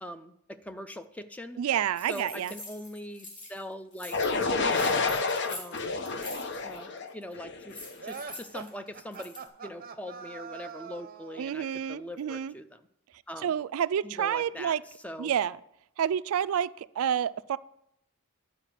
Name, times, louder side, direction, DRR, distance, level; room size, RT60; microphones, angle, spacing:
voice 1, 0.0-1.6 2.1-4.2 4.6-5.2 5.5-6.0 6.6-9.4 9.6-12.9 13.3-13.6 14.0-14.7 15.0-15.3, left 1 dB, 5° left, 9 dB, 0.5 m, -42 dB
voice 2, 1.6-2.5 11.4-12.5 13.4-14.8 15.2-15.6 16.0-17.6, right 9 dB, 80° right, 17 dB, 0.3 m, -29 dB
sound 1, 1.9-3.6 3.9-6.8 7.1-7.3 7.7-9.5, left 2 dB, 35° left, 2.9 m, -45 dB
sound 2, 4.1-8.0, left 3 dB, 55° left, 0.8 m, -29 dB
sound 3, 8.0-11.5, right 6 dB, 45° right, 0.6 m, -43 dB
11.0 x 4.9 x 7.4 m, 0.77 s
head